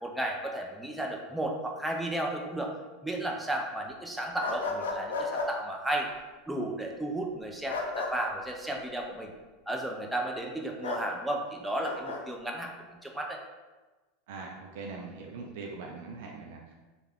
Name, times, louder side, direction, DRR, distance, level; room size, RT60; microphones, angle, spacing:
voice 1, 0.0-2.8 3.0-6.1 6.5-9.3 9.7-12.7 13.0-13.4, right 1 dB, 5° right, 1 dB, 0.6 m, -33 dB
sound 1, 4.4-5.5 7.7-8.1 10.8-11.0 11.8-12.2, left 3 dB, 90° left, 0.5 m, -33 dB
voice 2, 14.3-16.7, right 4 dB, 70° right, 0 dB, 0.4 m, -41 dB
3.3 x 2.3 x 3.5 m, 1.2 s
hypercardioid pair, 100°, 0 cm